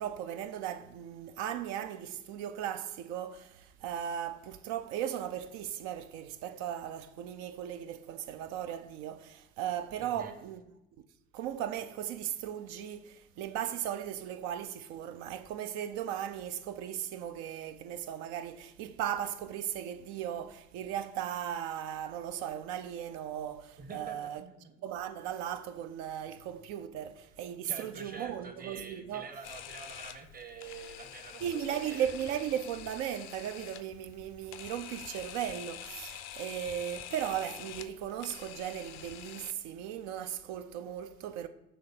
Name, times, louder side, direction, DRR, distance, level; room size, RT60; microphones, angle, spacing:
voice 1, 0.0-10.6 11.3-24.4 24.8-29.3 31.4-41.5, right 10 dB, 55° right, 0.4 m, -37 dB
voice 2, 10.0-10.4 23.8-24.7 27.7-31.4 31.7-32.1, right 4 dB, 25° right, 0.9 m, -46 dB
Camera, 29.4-39.5, left 11 dB, 50° left, 0.5 m, -46 dB
6.7 x 3.3 x 4.1 m
figure-of-eight pair, 50°, 33 cm